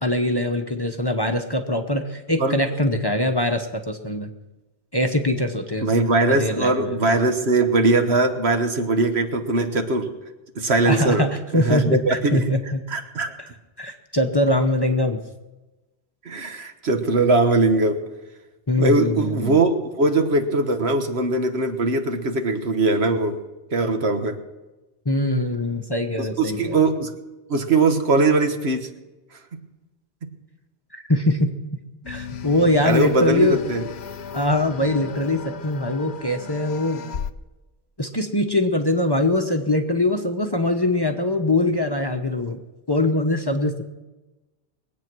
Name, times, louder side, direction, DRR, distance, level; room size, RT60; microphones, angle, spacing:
voice 1, 0.0-4.3 4.9-5.9 6.3-7.0 10.8-12.8 13.8-15.2 18.7-19.6 25.0-26.7 30.9-31.5 32.1-33.6 34.3-37.0 38.0-42.6 42.9-43.8, left 1 dB, 25° left, 5 dB, 0.9 m, -22 dB
voice 2, 5.8-10.1 10.5-11.3 11.5-12.5 12.9-13.3 16.2-18.0 18.8-23.4 23.7-24.4 26.2-27.1 27.5-28.9 29.5-29.6 32.8-33.8, right 3 dB, 65° right, 6 dB, 1.5 m, -21 dB
sound 1, 32.0-37.3, left 7 dB, 70° left, 1.0 m, -36 dB
22.0 x 8.7 x 6.1 m, 1.1 s
omnidirectional pair, 1.1 m